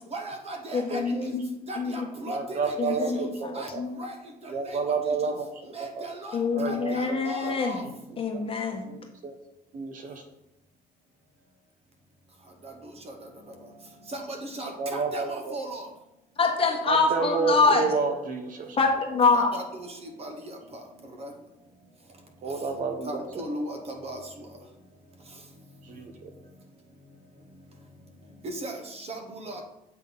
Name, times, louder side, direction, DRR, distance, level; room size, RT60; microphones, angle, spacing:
voice 1, 0.1-1.0 1.7-3.3 3.5-3.7 4.0-4.1 4.4-4.8 5.7-7.8 12.6-12.7 13.1-13.2 14.1-15.8 19.3-20.6 21.2-21.3 23.0-24.2 28.4-29.6, right 1 dB, 35° right, 4 dB, 1.1 m, -37 dB
voice 2, 0.7-1.4 1.8-2.1 2.8-3.9 6.3-7.8 8.2-8.9 16.4-17.9 18.8-19.6, left 4 dB, 35° left, 2 dB, 1.2 m, -25 dB
voice 3, 2.3-3.8 4.5-6.1 6.5-7.6 7.8-8.4 8.8-9.3 9.7-10.2 14.8-15.5 16.9-18.8 22.4-23.4 25.8-26.3, right 4 dB, 50° right, 5 dB, 0.9 m, -30 dB
7.7 x 3.7 x 3.8 m, 0.87 s
cardioid pair, 110°, 17 cm